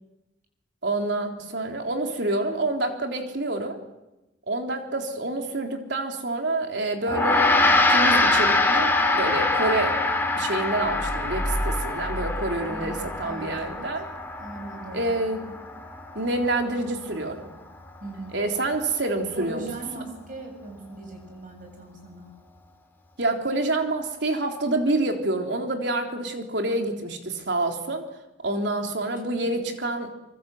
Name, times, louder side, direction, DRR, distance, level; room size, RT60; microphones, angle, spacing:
voice 1, 0.8-3.8 4.5-10.0 10.4-14.0 14.9-15.4 16.2-17.5 18.3-19.7 23.2-28.1 28.4-30.1, right 2 dB, 70° right, 3 dB, 3.7 m, -27 dB
Gong, 7.1-16.7, left 2 dB, 10° left, 3.7 m, -24 dB
sound 1, 10.8-13.7, equal, 10° right, 6.0 m, -32 dB
voice 2, 12.6-13.0 13.2-13.9 14.4-15.1 18.0-18.4 19.3-22.3 28.7-29.7, right 2 dB, 45° right, 3 dB, 7.8 m, -40 dB
25.5 x 24.5 x 8.0 m, 1.0 s
head